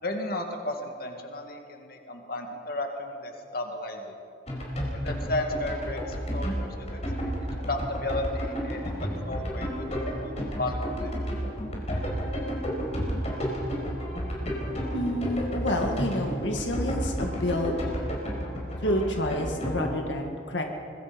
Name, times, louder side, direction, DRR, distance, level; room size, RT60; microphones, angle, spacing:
voice 1, 0.0-4.1 4.9-7.3 7.7-9.8 10.1-10.2 10.6-11.1, left 2 dB, 55° left, 3 dB, 2.2 m, -34 dB
sound 1, 4.5-20.0, equal, 35° left, 4.6 m, -31 dB
voice 2, 14.9-17.7 18.8-20.6, left 1 dB, 80° left, 3 dB, 1.9 m, -29 dB
25.0 x 21.0 x 5.3 m, 2.5 s
head